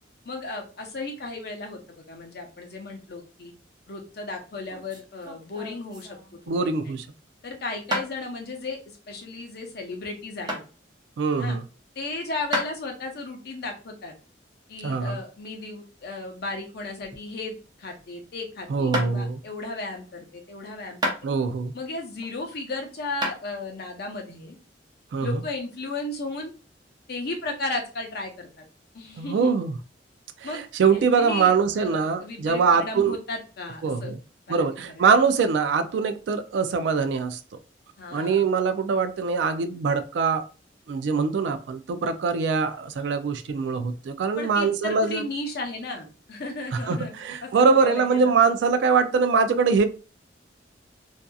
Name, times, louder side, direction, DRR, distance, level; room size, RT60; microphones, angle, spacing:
voice 1, 0.2-3.5 3.9-6.2 6.6-6.9 7.4-10.6 11.4-11.6 12.0-14.1 14.7-21.1 21.7-24.6 25.2-26.5 27.1-28.7 28.9-29.5 30.4-30.6 30.9-34.1 34.5-35.0 38.0-38.5 44.4-47.1 47.4-48.3, left 3 dB, 60° left, 0.7 m, -35 dB
sound 1, 4.5-6.6 7.9-8.1 10.5-10.7 12.5-12.8 16.0-17.4 17.7-18.1 18.9-19.1 21.0-21.6 22.2-22.7 23.2-23.4, equal, 25° right, 0.6 m, -31 dB
voice 2, 6.5-7.1 11.2-11.6 14.8-15.2 18.7-19.4 21.2-21.7 25.1-25.4 29.2-29.8 30.4-33.2 33.8-34.2 34.5-37.4 38.1-40.4 40.9-45.2 46.7-49.8, right 5 dB, 75° right, 0.3 m, -23 dB
2.7 x 2.4 x 2.2 m
head